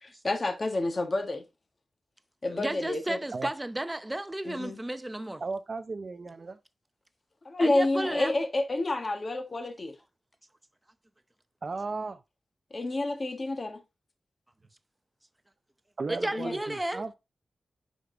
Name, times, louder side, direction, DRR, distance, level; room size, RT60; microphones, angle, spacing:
voice 1, 0.0-1.4 2.4-3.2 4.4-4.8 7.4-9.9 12.7-13.8 16.3-16.5, left 2 dB, 40° left, 1.4 m, -29 dB
voice 2, 2.5-5.4 7.6-8.3 16.1-17.0, right 1 dB, 15° right, 0.8 m, -33 dB
voice 3, 5.4-6.6 11.6-12.2 16.0-17.1, right 4 dB, 50° right, 0.6 m, -35 dB
7.0 x 5.3 x 3.8 m
wide cardioid pair, 85°, 0 cm